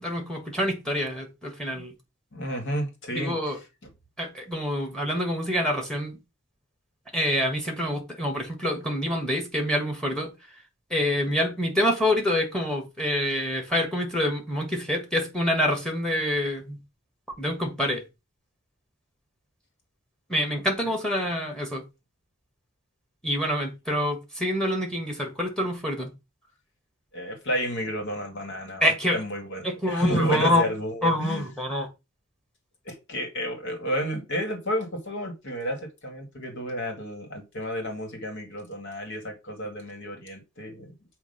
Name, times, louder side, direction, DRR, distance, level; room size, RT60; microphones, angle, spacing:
voice 1, 0.0-1.9 3.1-3.6 4.2-6.2 7.1-10.3 10.9-16.8 17.4-18.0 20.3-21.8 23.2-26.1 28.8-29.2 29.6-30.7 31.0-31.9, left 1 dB, 5° left, 1.7 m, -26 dB
voice 2, 2.3-3.3 27.1-31.5 32.9-40.9, equal, 60° left, 2.2 m, -31 dB
7.4 x 2.9 x 5.7 m
head